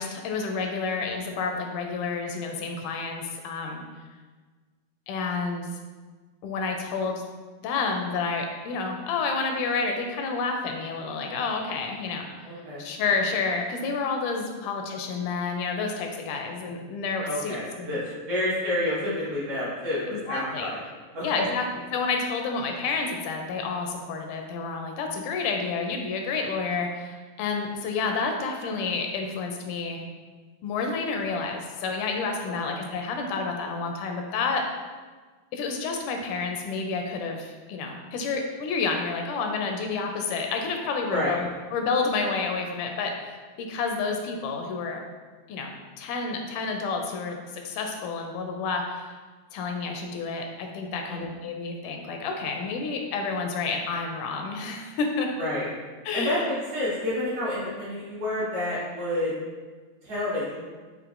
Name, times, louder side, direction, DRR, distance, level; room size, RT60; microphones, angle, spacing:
voice 1, 0.0-3.8 5.1-5.7 6.4-7.2 7.6-12.5 12.8-17.9 20.1-20.7 21.2-21.6 21.9-30.0 30.6-34.7 35.5-45.0 45.5-49.1 49.5-55.3 56.1-56.5, left 4 dB, 85° left, 3 dB, 2.0 m, -29 dB
voice 2, 12.4-12.8 17.2-18.0 18.3-20.8 21.1-21.4 32.4-32.7 41.1-41.3 51.0-51.2 55.4-55.7 56.1-59.3 60.0-60.6, left 1 dB, 60° right, -10 dB, 2.0 m, -29 dB
6.0 x 3.0 x 2.4 m, 1.4 s
omnidirectional pair, 3.6 m